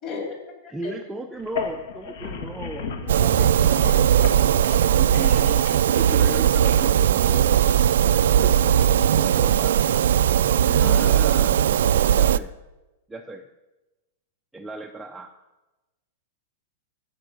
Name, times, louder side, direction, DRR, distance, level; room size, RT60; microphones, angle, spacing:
voice 1, 0.0-0.4 0.6-0.9 3.1-3.5 10.6-11.1, left 4 dB, 30° left, 0 dB, 3.5 m, -35 dB
voice 2, 0.7-4.0 5.0-7.6 8.0-8.7 9.0-10.0 10.8-11.6 12.1-12.5 13.1-13.5 14.5-15.3, right 2 dB, 5° right, 4 dB, 0.4 m, -36 dB
sound 1, 1.4-6.8, left 5 dB, 65° left, 1.4 m, -35 dB
sound 2, 3.1-12.4, right 10 dB, 80° right, 0.3 m, -19 dB
14.5 x 5.2 x 6.5 m, 1.1 s
supercardioid pair, 160°, 0 cm